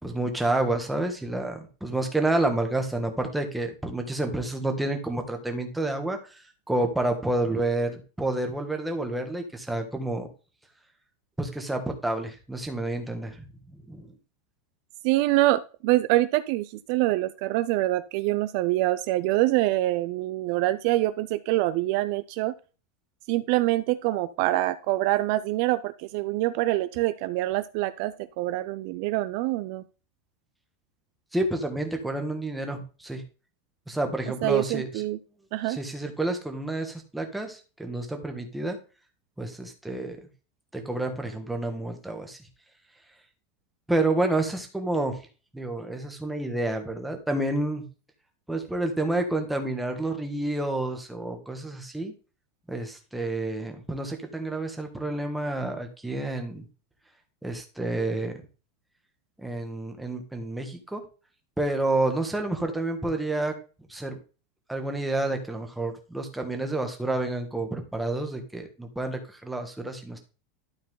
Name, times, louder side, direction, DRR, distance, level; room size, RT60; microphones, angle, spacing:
voice 1, 0.0-10.3 11.4-13.5 13.7-14.1 31.3-33.2 33.9-35.0 35.6-38.8 39.4-40.2 40.7-42.4 43.9-45.2 45.5-47.8 48.5-52.1 52.7-56.6 57.4-58.3 59.4-61.0 61.6-63.5 63.9-64.2 64.7-70.2, right 2 dB, 5° right, 4 dB, 1.4 m, -29 dB
voice 2, 15.0-22.5 23.3-29.8 34.4-35.2 35.5-35.8, right 17 dB, 55° right, 13 dB, 0.4 m, -25 dB
12.0 x 4.6 x 3.8 m, 0.35 s
supercardioid pair, 160°, 0 cm